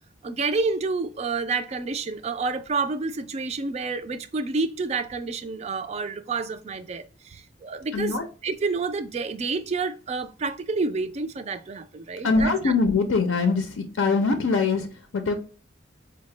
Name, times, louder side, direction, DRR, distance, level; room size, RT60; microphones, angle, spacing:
voice 1, 0.2-8.2 8.4-12.7, right 4 dB, 35° right, 0.3 m, -29 dB
voice 2, 7.9-8.3 12.2-15.3, left 4 dB, 75° left, 0.5 m, -23 dB
4.5 x 2.1 x 3.2 m
head